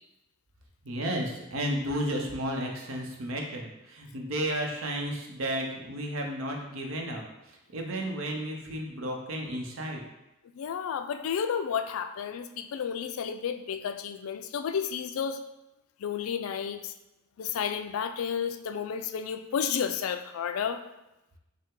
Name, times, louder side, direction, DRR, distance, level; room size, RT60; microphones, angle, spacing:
voice 1, 0.8-10.0, right 1 dB, 70° right, 1 dB, 0.7 m, -33 dB
voice 2, 10.6-15.4 16.0-16.9 17.4-20.8, left 7 dB, 80° left, 9 dB, 0.3 m, -31 dB
5.4 x 2.1 x 3.7 m, 0.93 s
head